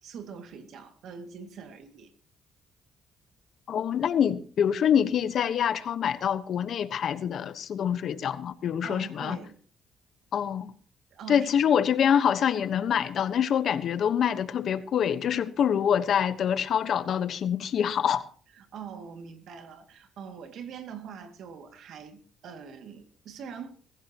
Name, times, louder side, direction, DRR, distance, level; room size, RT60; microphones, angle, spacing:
voice 1, 0.0-2.1 8.8-9.6 11.1-11.5 18.5-23.7, right 6 dB, 75° right, 2.4 m, -43 dB
voice 2, 3.7-9.4 10.3-10.7 11.3-18.3, left 8 dB, 65° left, 1.2 m, -25 dB
21.5 x 15.0 x 3.0 m
cardioid pair, 90°, 0 cm